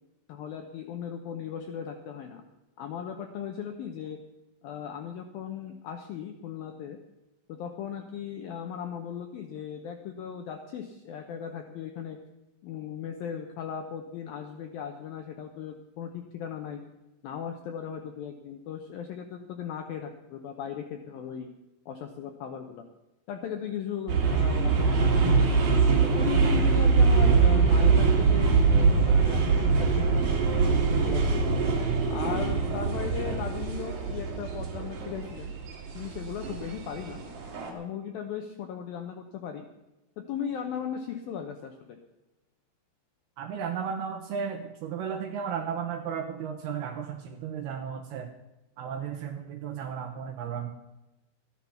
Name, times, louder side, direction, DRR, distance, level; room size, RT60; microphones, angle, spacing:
voice 1, 0.3-2.4 2.8-4.2 4.6-7.0 7.5-12.2 12.6-16.8 17.2-21.5 21.9-22.8 23.3-25.5 26.0-30.2 31.0-31.8 32.1-35.5 35.9-37.2 37.7-39.7 40.2-42.0, left 8 dB, 80° left, 5 dB, 2.1 m, -37 dB
sound 1, 24.1-37.7, right 4 dB, 50° right, 3.4 m, -23 dB
voice 2, 43.4-48.3 48.8-50.7, right 7 dB, 75° right, 5 dB, 2.5 m, -34 dB
14.0 x 10.5 x 5.7 m, 0.98 s
omnidirectional pair, 5.4 m